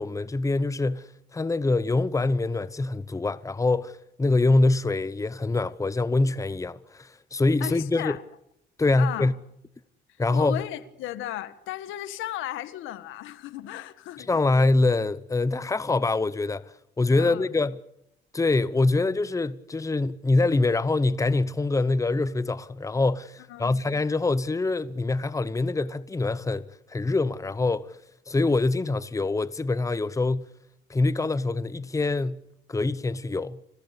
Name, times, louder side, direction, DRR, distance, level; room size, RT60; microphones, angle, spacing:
voice 1, 0.0-8.2 8.8-9.3 10.2-10.6 14.2-17.8 18.3-28.0 28.3-30.5 30.9-32.4 32.7-33.6, left 3 dB, 15° left, 0.9 m, -25 dB
voice 2, 7.6-8.2 9.0-9.3 10.3-14.4 17.2-17.5 23.5-23.8, left 13 dB, 90° left, 1.7 m, -35 dB
26.0 x 18.0 x 8.4 m
cardioid pair, 90°, 20 cm